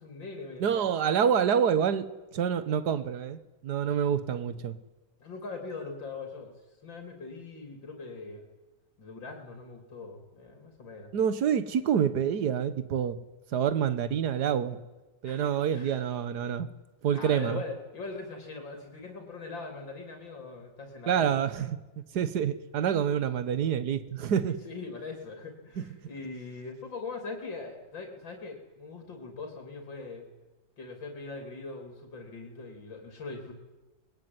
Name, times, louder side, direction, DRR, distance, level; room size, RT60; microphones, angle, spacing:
voice 1, 0.0-0.8 5.2-6.6 6.8-8.5 9.0-11.1 15.3-16.0 17.1-21.7 24.5-30.3 30.8-33.5, left 3 dB, 85° left, 4 dB, 4.0 m, -41 dB
voice 2, 0.6-2.1 2.3-4.8 11.1-13.2 13.5-14.8 15.2-16.7 17.0-17.6 21.1-21.8 22.1-24.6 25.8-25.9, right 8 dB, 60° right, 14 dB, 1.8 m, -27 dB
24.5 x 21.5 x 9.6 m, 1.1 s
omnidirectional pair, 2.0 m